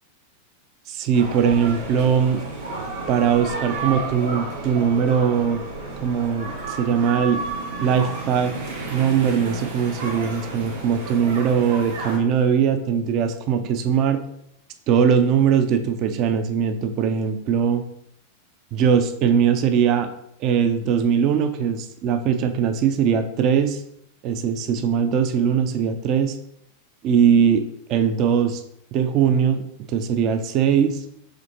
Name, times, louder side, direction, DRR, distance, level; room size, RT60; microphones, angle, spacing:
voice 1, 0.9-2.4 3.1-5.6 6.0-7.4 7.8-8.5 8.9-14.2 14.9-17.8 18.7-20.1 20.4-23.8 24.2-26.4 27.0-27.6 27.9-28.6 28.9-31.0, right 7 dB, 40° right, 8 dB, 0.4 m, -20 dB
sound 1, 1.1-12.2, right 3 dB, 60° right, 1.3 m, -32 dB
5.0 x 3.5 x 2.9 m, 0.76 s
figure-of-eight pair, 90°, 0 cm